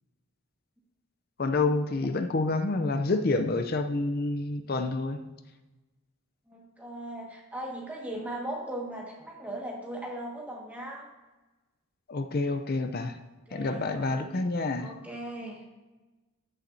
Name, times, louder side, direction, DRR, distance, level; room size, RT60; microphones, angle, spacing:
voice 1, 1.4-5.2 12.1-13.2 13.5-14.9, left 3 dB, 45° left, 8 dB, 0.5 m, -28 dB
voice 2, 6.5-11.1 13.2-14.3 14.8-15.7, right 1 dB, 5° right, -2 dB, 1.7 m, -39 dB
14.0 x 7.2 x 2.7 m, 1.2 s
head